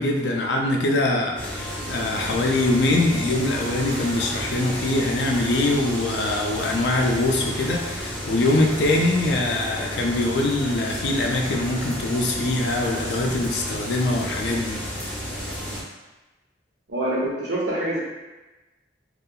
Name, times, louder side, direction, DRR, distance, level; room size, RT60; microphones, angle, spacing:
voice 1, 0.0-14.8, left 2 dB, 65° left, 0 dB, 0.4 m, -23 dB
sound 1, 1.4-15.8, equal, 5° left, 0.4 m, -32 dB
voice 2, 16.9-18.0, right 1 dB, 85° right, -6 dB, 0.8 m, -25 dB
2.3 x 2.3 x 2.7 m, 1.1 s
head